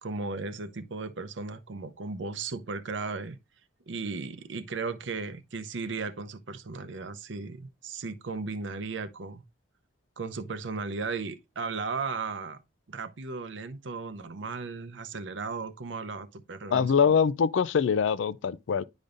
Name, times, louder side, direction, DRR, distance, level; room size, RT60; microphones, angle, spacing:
voice 1, 0.0-3.4 3.9-9.4 10.2-12.6 12.9-17.2, right 4 dB, 75° right, 0.7 m, -36 dB
voice 2, 16.7-18.8, left 6 dB, 80° left, 0.4 m, -24 dB
9.9 x 5.2 x 2.5 m
head